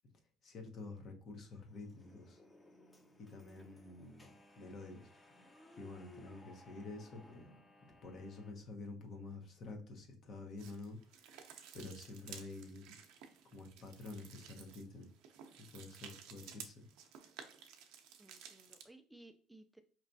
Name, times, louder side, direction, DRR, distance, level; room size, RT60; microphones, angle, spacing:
voice 1, 0.4-2.4 3.3-4.3 4.6-5.1 5.8-7.4 8.0-11.0 11.7-12.9 13.5-15.1 15.6-16.8, left 3 dB, 50° left, 3 dB, 1.0 m, -49 dB
sound 1, 1.7-8.5, left 1 dB, 15° left, 0.7 m, -61 dB
sound 2, 10.6-18.9, right 8 dB, 75° right, 0.6 m, -55 dB
voice 2, 18.2-19.8, right 2 dB, 5° right, 8 dB, 0.4 m, -59 dB
4.4 x 3.0 x 2.6 m, 0.41 s
supercardioid pair, 90°, 0 cm